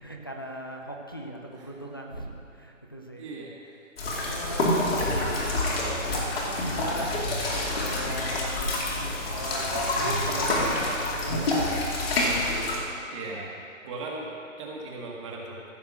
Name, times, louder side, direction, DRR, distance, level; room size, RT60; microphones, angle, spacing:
voice 1, 0.0-3.2 4.2-4.9 5.9-6.3 6.7-7.2 7.4-11.6 14.1-14.3, right 1 dB, 20° left, 0 dB, 0.5 m, -38 dB
voice 2, 3.1-3.8 4.7-5.6 6.1-6.3 13.1-13.5 13.9-14.3 14.6-15.6, right 3 dB, 25° right, -2 dB, 1.4 m, -38 dB
sound 1, 4.0-12.8, left 1 dB, 45° left, 2.5 m, -27 dB
15.0 x 6.4 x 6.3 m, 2.5 s
figure-of-eight pair, 150°, 40 cm